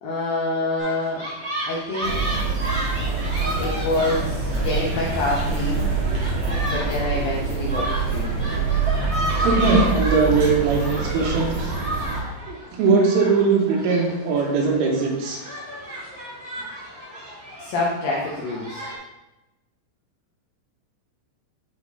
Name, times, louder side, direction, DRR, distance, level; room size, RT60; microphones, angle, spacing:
voice 1, 0.0-1.2 1.7-2.3 3.6-5.9 6.6-8.6 17.6-18.9, left 2 dB, 80° left, -4 dB, 2.1 m, -27 dB
sound 1, 0.8-19.0, equal, 35° right, 1.6 m, -33 dB
sound 2, 2.0-12.2, right 4 dB, 60° right, 1.8 m, -25 dB
voice 2, 9.4-11.8 12.4-15.4, right 4 dB, 90° right, -1 dB, 3.9 m, -20 dB
10.5 x 4.6 x 2.7 m, 0.95 s
omnidirectional pair, 5.5 m